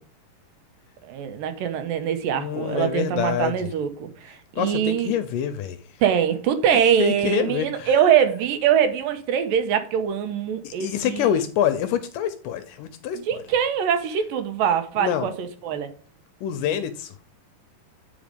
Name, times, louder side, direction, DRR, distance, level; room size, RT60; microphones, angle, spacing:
voice 1, 1.0-5.1 6.0-11.3 13.3-15.9, right 8 dB, 75° right, 2.4 m, -23 dB
voice 2, 2.4-3.7 4.6-5.8 7.0-7.9 10.6-13.4 15.0-15.3 16.4-17.2, left 9 dB, 80° left, 2.0 m, -26 dB
8.5 x 5.1 x 5.1 m
omnidirectional pair, 4.2 m